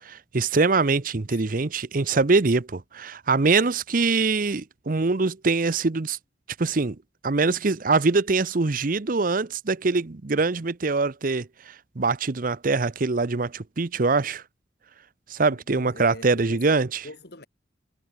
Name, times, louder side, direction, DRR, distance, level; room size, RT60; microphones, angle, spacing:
voice 1, 0.1-6.2 6.6-7.0 7.2-14.4 15.3-16.9, right 3 dB, 50° right, 0.8 m, -23 dB
voice 2, 15.5-17.5, left 2 dB, 60° left, 3.0 m, -44 dB
head